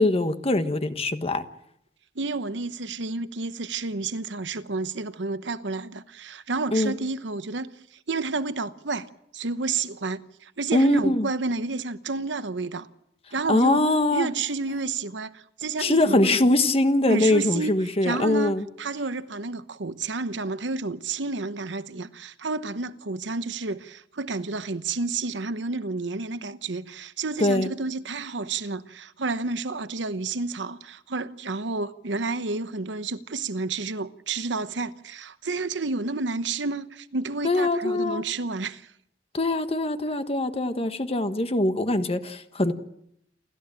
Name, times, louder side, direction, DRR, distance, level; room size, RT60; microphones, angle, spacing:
voice 1, 0.0-1.4 6.7-6.9 10.7-11.3 13.5-14.3 15.8-18.6 27.4-27.7 37.4-38.2 39.3-42.7, left 2 dB, 35° left, 1.4 m, -22 dB
voice 2, 2.1-12.9 13.3-13.9 14.1-16.4 17.1-38.9, right 3 dB, 75° right, 1.0 m, -30 dB
29.0 x 13.5 x 8.9 m
head